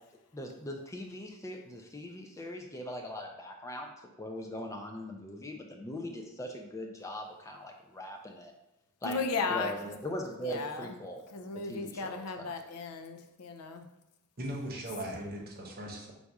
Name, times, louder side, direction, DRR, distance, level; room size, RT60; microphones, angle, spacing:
voice 1, 0.3-3.9 4.2-8.5 9.0-9.2 9.5-9.8 10.0-11.2 11.7-12.4, left 1 dB, 15° left, 2 dB, 0.3 m, -40 dB
voice 2, 9.0-11.0 11.3-13.9 15.1-15.2, left 4 dB, 85° left, 7 dB, 0.5 m, -36 dB
voice 3, 14.4-16.1, right 1 dB, 45° right, -1 dB, 0.9 m, -38 dB
4.0 x 2.4 x 4.6 m, 0.91 s
head